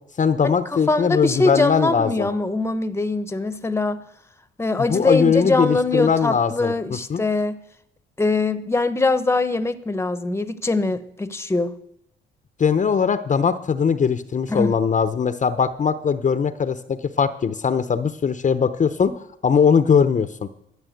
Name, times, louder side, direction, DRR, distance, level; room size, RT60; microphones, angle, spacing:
voice 1, 0.2-2.3 4.8-6.7 7.1-7.2 12.6-20.5, left 6 dB, 40° left, 12 dB, 0.8 m, -20 dB
voice 2, 0.7-4.0 4.6-7.6 8.2-11.7 14.5-14.8, left 3 dB, 10° left, 13 dB, 1.0 m, -22 dB
13.0 x 9.0 x 7.8 m, 0.72 s
cardioid pair, 90°, 20 cm